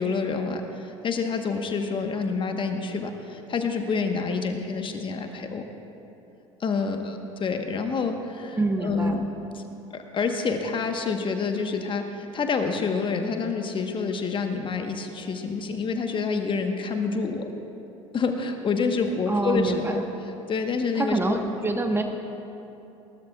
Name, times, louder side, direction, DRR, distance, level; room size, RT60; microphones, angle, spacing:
voice 1, 0.0-5.6 6.6-9.2 9.5-9.6 9.9-17.5 18.1-21.4, left 4 dB, 30° left, 5 dB, 1.2 m, -28 dB
voice 2, 8.6-9.2 19.3-19.9 21.0-22.0, right 2 dB, 15° right, 4 dB, 1.2 m, -26 dB
20.5 x 18.5 x 2.4 m, 2.9 s
figure-of-eight pair, 65°, 16 cm